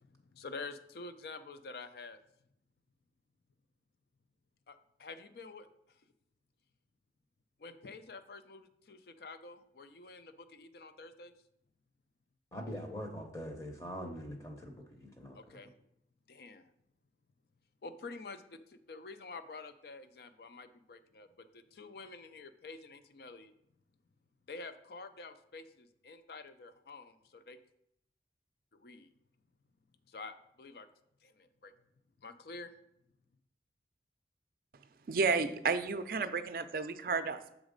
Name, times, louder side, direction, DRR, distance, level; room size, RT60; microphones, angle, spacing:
voice 1, 0.0-2.2 4.7-6.0 7.6-11.3 15.3-15.7 16.3-16.7 17.8-23.5 24.5-27.6 28.7-29.1 30.1-30.9 31.2-31.7 32.2-32.7, left 3 dB, 60° left, 11 dB, 0.4 m, -48 dB
voice 2, 12.5-15.6, equal, 20° left, 3 dB, 0.7 m, -43 dB
voice 3, 35.1-37.5, right 4 dB, 55° right, 11 dB, 0.4 m, -32 dB
6.1 x 4.0 x 5.1 m, 0.77 s
head